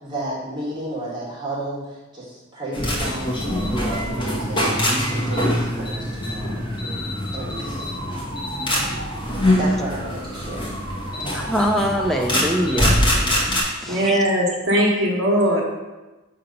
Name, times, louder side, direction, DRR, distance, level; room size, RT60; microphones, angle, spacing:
voice 1, 0.0-4.7 5.0-6.6 7.3-7.9 9.6-10.7, right 1 dB, 20° right, -7 dB, 1.4 m, -32 dB
sound 1, 2.7-13.6, left 1 dB, 25° left, 1.1 m, -23 dB
voice 2, 11.3-13.0 13.8-14.3, equal, ahead, 1 dB, 0.5 m, -23 dB
voice 3, 13.9-15.6, equal, 65° right, -1 dB, 1.1 m, -19 dB
6.5 x 2.9 x 5.2 m, 1.1 s
head